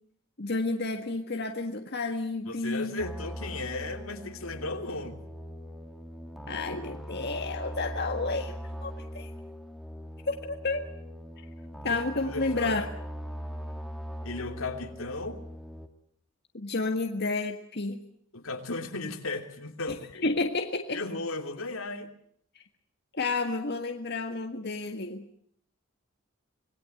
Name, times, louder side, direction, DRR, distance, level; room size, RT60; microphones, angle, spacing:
voice 1, 0.4-3.0 6.5-9.3 10.3-10.9 11.8-12.9 16.5-18.0 20.2-21.0 22.6-22.7 23.1-25.3, left 3 dB, 55° left, 5 dB, 1.7 m, -31 dB
voice 2, 2.5-5.2 11.8-12.9 14.2-15.4 18.3-20.3 20.9-22.1, left 2 dB, 85° left, 5 dB, 3.1 m, -36 dB
sound 1, 3.0-15.9, equal, ahead, 2.1 m, -40 dB
26.0 x 20.5 x 7.9 m, 0.65 s
head